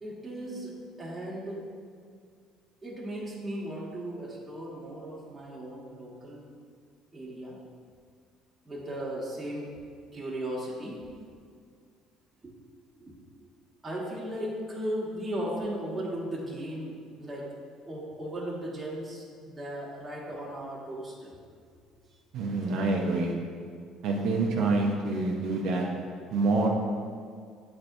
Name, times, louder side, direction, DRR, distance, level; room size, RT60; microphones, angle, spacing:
voice 1, 0.0-1.6 2.8-6.6 7.1-7.5 8.6-9.7 10.1-11.0 12.4-12.5 13.0-13.1 13.8-17.5 17.8-21.3, right 1 dB, 15° right, -6 dB, 1.4 m, -36 dB
voice 2, 22.3-23.3 24.0-25.9 26.3-26.7, right 3 dB, 70° right, -1 dB, 0.7 m, -26 dB
8.5 x 4.3 x 2.6 m, 2.1 s
cardioid pair, 105°, 0 cm